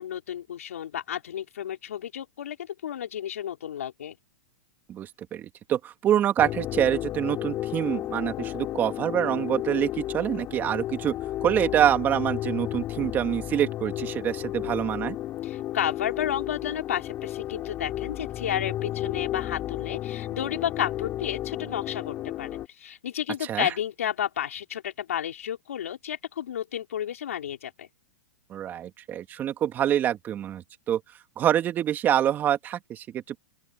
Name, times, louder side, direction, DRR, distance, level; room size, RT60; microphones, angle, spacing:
voice 1, 0.0-4.2 15.4-27.9, left 10 dB, 80° left, 5.3 m, -32 dB
voice 2, 4.9-11.2 11.4-15.2 23.4-23.7 28.5-31.0 31.4-33.4, right 10 dB, 25° right, 2.6 m, -26 dB
sound 1, 6.4-22.7, left 13 dB, 30° left, 6.0 m, -33 dB
open air
hypercardioid pair, 135°, 8 cm